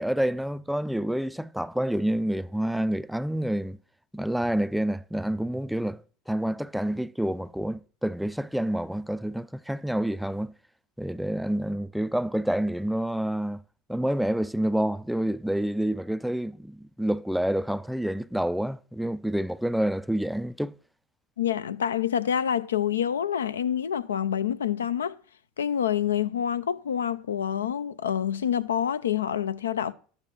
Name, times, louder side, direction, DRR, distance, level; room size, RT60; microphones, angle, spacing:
voice 1, 0.0-3.8 4.1-6.0 6.3-10.5 11.0-13.6 13.9-20.8, right 1 dB, ahead, 0.3 m, -28 dB
voice 2, 21.4-25.2 25.6-29.9, left 9 dB, 80° left, 0.4 m, -27 dB
12.0 x 8.8 x 3.0 m
figure-of-eight pair, 75°, 0 cm